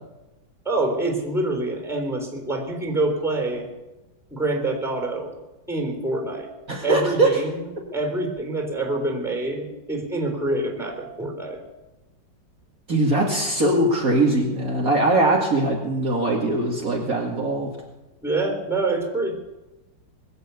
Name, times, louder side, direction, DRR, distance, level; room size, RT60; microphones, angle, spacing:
voice 1, 0.7-3.7 4.3-5.3 5.7-6.5 6.8-11.6 18.2-19.3, right 2 dB, ahead, 3 dB, 3.5 m, -26 dB
voice 2, 6.7-7.4 12.9-17.7, right 2 dB, 50° right, -1 dB, 2.4 m, -21 dB
21.0 x 8.2 x 8.3 m, 1.0 s
omnidirectional pair, 2.0 m